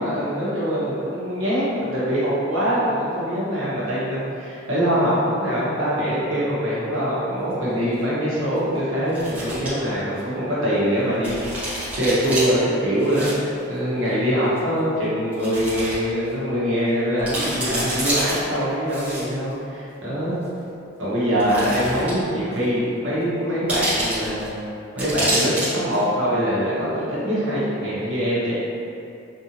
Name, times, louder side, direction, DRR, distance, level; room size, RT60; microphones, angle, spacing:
voice 1, 0.0-13.3 13.7-20.4 21.0-24.5 24.9-28.5, equal, 60° right, -9 dB, 1.1 m, -23 dB
sound 1, 7.5-7.6 9.1-9.7 10.2-10.3 11.2-12.5 13.0-13.3 13.6-13.7 14.6-14.7 15.3-15.9 16.3-16.4 16.9-17.0 17.2-18.4 18.9-19.5 20.4-20.5 21.3-22.3 22.5-22.6 23.7-24.5 25.0-25.7 25.9-26.0, right 1 dB, 5° right, 0.9 m, -27 dB
3.6 x 2.7 x 2.9 m, 2.6 s
head